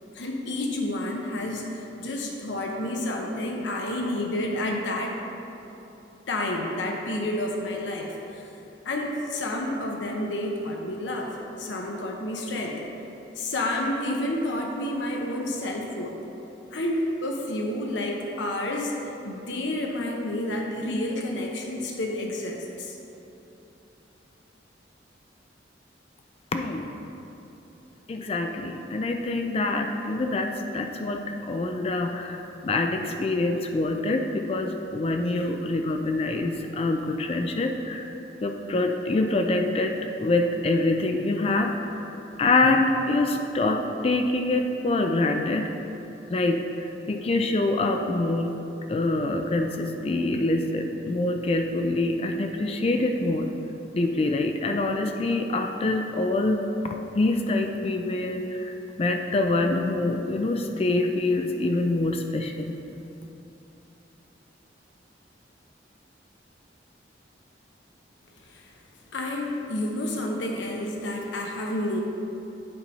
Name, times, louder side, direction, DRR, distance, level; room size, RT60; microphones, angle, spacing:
voice 1, 0.1-5.2 6.3-8.5 8.8-12.8 13.4-16.2 16.7-19.0 19.2-23.0 68.5-68.7 69.1-72.0, left 1 dB, 80° left, 0 dB, 0.8 m, -30 dB
voice 2, 26.5-26.9 28.1-38.1 38.4-42.0 42.4-45.7 46.3-48.5 48.9-53.5 53.9-58.7 59.0-62.7, left 2 dB, 30° left, 5 dB, 0.3 m, -25 dB
8.7 x 4.2 x 5.4 m, 3.0 s
head